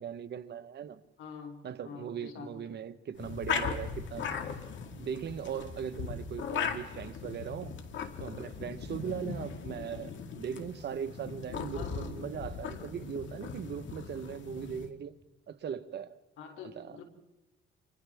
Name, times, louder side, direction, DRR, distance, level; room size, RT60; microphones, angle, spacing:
voice 1, 0.0-1.0 1.6-4.3 4.9-7.8 8.2-15.2 15.5-16.2 16.8-17.0, right 8 dB, 60° right, 1.2 m, -39 dB
voice 2, 1.2-2.5 11.7-12.2 16.4-17.0, left 5 dB, 85° left, 3.1 m, -46 dB
sound 1, 3.1-14.9, left 6 dB, 70° left, 2.0 m, -38 dB
30.0 x 26.0 x 3.6 m
cardioid pair, 90°, 20 cm